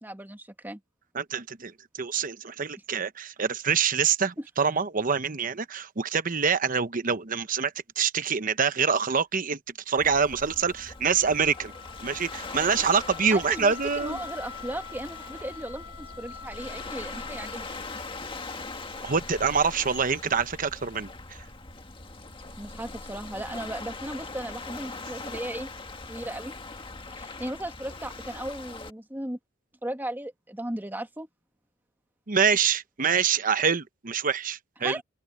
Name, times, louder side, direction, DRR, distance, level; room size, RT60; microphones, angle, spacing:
voice 1, 0.0-0.8 4.4-4.5 13.3-17.7 22.6-25.7 26.1-26.5 27.1-29.4 29.8-31.3 34.8-35.0, right 1 dB, 10° right, 1.7 m, -36 dB
voice 2, 1.1-1.7 2.0-9.6 9.9-11.7 12.0-14.2 19.0-21.1 32.3-35.0, right 6 dB, 45° right, 0.9 m, -25 dB
Waves surf, 10.0-28.9, left 3 dB, 25° left, 1.7 m, -41 dB
Wind instrument woodwind instrument, 10.3-18.3, left 6 dB, 70° left, 4.3 m, -45 dB
head